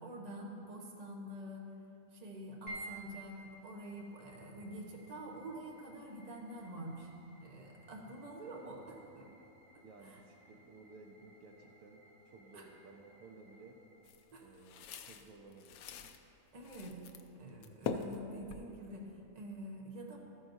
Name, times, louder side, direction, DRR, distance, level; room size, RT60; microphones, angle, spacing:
voice 1, 0.0-1.7 2.1-7.1 7.4-9.3 9.7-10.2 12.5-12.7 14.3-14.5 16.5-17.1 17.3-20.2, right 1 dB, 30° right, -2 dB, 1.1 m, -47 dB
sound 1, 2.7-17.1, right 1 dB, 70° left, 2.8 m, -56 dB
voice 2, 9.8-13.8 14.4-16.1, right 3 dB, 70° right, 2 dB, 1.1 m, -57 dB
sound 2, 14.0-16.2 16.6-17.3 17.5-19.1, left 6 dB, 85° left, 1.1 m, -43 dB
13.0 x 9.5 x 2.7 m, 2.9 s
omnidirectional pair, 1.5 m